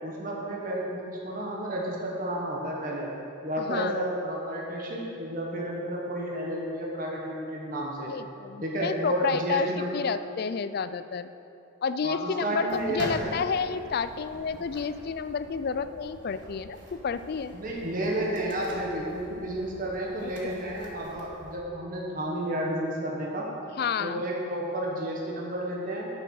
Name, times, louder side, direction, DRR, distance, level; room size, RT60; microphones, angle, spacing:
voice 1, 0.0-3.1 3.4-8.1 8.6-9.9 12.0-13.4 17.5-23.5 24.0-26.1, right 1 dB, 40° right, -3 dB, 1.3 m, -31 dB
voice 2, 3.6-4.0 8.1-11.3 11.8-17.6 20.2-20.6 23.8-24.2, left 6 dB, 45° left, 13 dB, 0.3 m, -30 dB
sound 1, 12.7-21.6, right 1 dB, 55° right, 1.6 m, -45 dB
9.4 x 6.8 x 6.4 m, 2.8 s
head